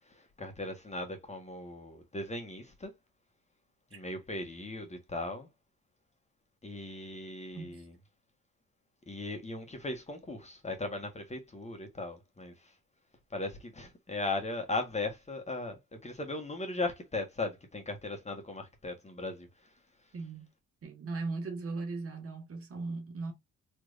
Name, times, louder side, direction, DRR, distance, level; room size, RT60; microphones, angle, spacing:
voice 1, 0.1-2.9 3.9-5.5 6.6-7.9 9.1-12.7 13.3-19.5, left 2 dB, 25° left, 1.4 m, -38 dB
voice 2, 20.1-20.5 20.8-23.3, right 3 dB, 50° right, 1.5 m, -38 dB
3.3 x 3.2 x 2.5 m
supercardioid pair, 60°, 29 cm